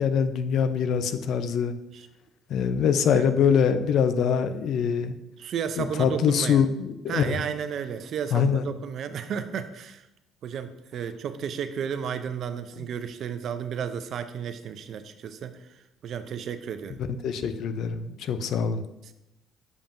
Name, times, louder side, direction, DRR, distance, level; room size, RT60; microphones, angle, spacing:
voice 1, 0.0-1.7 2.5-5.2 5.8-7.4 8.3-8.6 17.2-18.8, left 7 dB, 65° left, 10 dB, 0.5 m, -24 dB
voice 2, 5.4-6.6 7.1-10.1 10.4-15.7 16.0-17.0, right 7 dB, 60° right, 10 dB, 0.5 m, -33 dB
7.1 x 5.2 x 2.6 m, 0.91 s
supercardioid pair, 70°, 0 cm